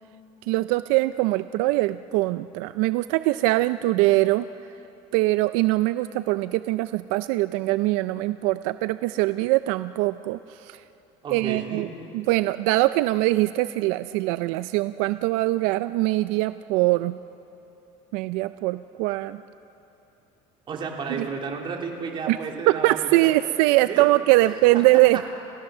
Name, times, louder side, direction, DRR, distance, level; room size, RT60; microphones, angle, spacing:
voice 1, 0.4-4.5 5.1-10.8 11.3-11.9 12.1-17.2 18.1-19.4 21.2-21.3 22.3-22.4 22.7-25.2, right 19 dB, 85° right, 13 dB, 0.4 m, -22 dB
voice 2, 11.2-11.8 20.7-23.3 23.9-24.1 24.4-24.8 25.1-25.4, right 5 dB, 35° right, 1 dB, 2.9 m, -33 dB
28.5 x 16.0 x 6.7 m, 2.9 s
cardioid pair, 130°, 14 cm